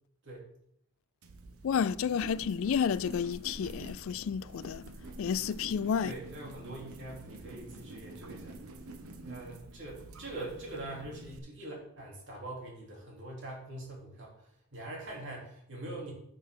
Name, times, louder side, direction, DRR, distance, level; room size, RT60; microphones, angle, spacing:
sound 1, 1.2-11.4, right 2 dB, 85° right, 0.9 m, -47 dB
voice 1, 1.6-4.8 5.2-6.1, left 7 dB, 65° left, 0.3 m, -31 dB
voice 2, 6.0-8.5 9.2-14.3 14.7-16.1, right 2 dB, 55° right, 3.2 m, -43 dB
9.3 x 6.5 x 3.8 m
head